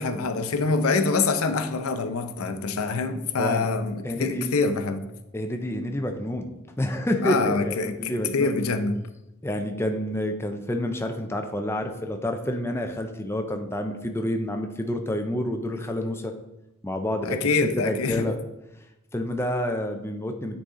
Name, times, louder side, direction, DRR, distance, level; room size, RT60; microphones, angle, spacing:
voice 1, 0.0-5.1 7.2-9.0 17.2-18.3, left 4 dB, 85° left, 0.6 m, -25 dB
voice 2, 4.0-4.5 5.3-8.5 9.4-16.3 16.8-18.4 19.1-20.6, left 1 dB, 10° left, 0.5 m, -28 dB
9.4 x 4.1 x 3.7 m
head